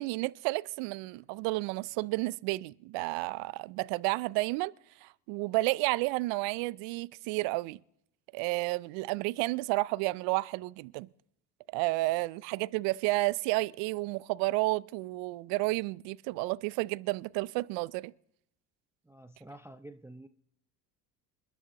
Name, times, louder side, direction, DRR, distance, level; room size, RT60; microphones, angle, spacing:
voice 1, 0.0-4.7 5.0-7.8 8.3-11.1 11.7-18.1, right 22 dB, 60° right, 0.6 m, -31 dB
voice 2, 19.0-20.3, right 1 dB, 5° right, 0.4 m, -49 dB
28.0 x 10.5 x 2.9 m
hypercardioid pair, 60°, 49 cm